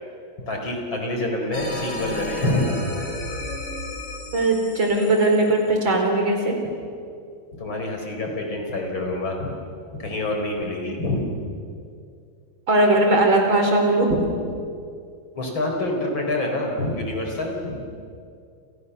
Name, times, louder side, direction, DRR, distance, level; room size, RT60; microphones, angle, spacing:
voice 1, 0.4-2.7 7.5-9.5 9.9-11.4 15.3-17.8, left 1 dB, 80° left, 2 dB, 5.6 m, -26 dB
sound 1, 1.5-6.4, left 2 dB, 60° left, 4.6 m, -33 dB
voice 2, 4.3-6.6 12.7-14.3, right 2 dB, 75° right, 3 dB, 5.3 m, -19 dB
29.5 x 28.5 x 7.0 m, 2.4 s
omnidirectional pair, 2.1 m